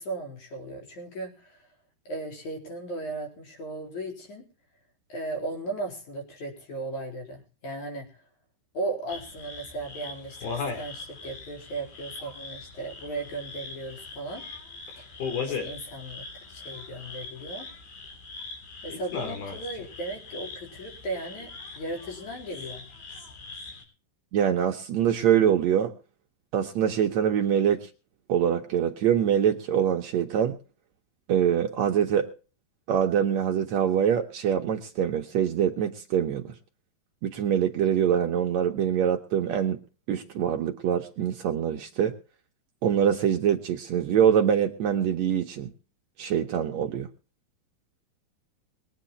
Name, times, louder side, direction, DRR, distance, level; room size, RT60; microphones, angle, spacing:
voice 1, 0.0-1.6 2.1-4.4 5.1-8.1 8.7-14.4 15.0-15.1 15.5-17.7 18.8-22.9, right 2 dB, 50° left, 2 dB, 5.2 m, -36 dB
sound 1, 9.1-23.8, left 4 dB, 65° left, 5.4 m, -39 dB
voice 2, 24.3-25.9 26.5-27.9 28.3-30.6 31.3-32.3 32.9-36.5 37.2-39.8 40.1-42.2 42.8-45.7 46.2-47.1, right 9 dB, 75° right, 3 dB, 1.6 m, -24 dB
22.0 x 9.0 x 4.2 m, 0.36 s
omnidirectional pair, 4.6 m